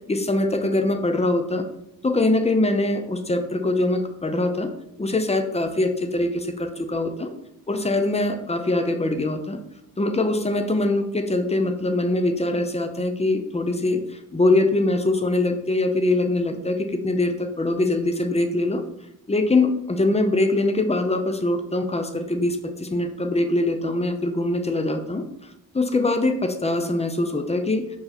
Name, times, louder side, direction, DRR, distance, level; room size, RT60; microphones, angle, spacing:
voice 1, 0.1-1.7 2.0-4.7 5.0-7.3 7.7-9.6 10.0-14.0 14.3-18.8 19.3-25.2 25.7-27.8, left 2 dB, 20° left, 7 dB, 0.7 m, -23 dB
6.5 x 4.8 x 4.3 m, 0.79 s
wide cardioid pair, 145°, 35 cm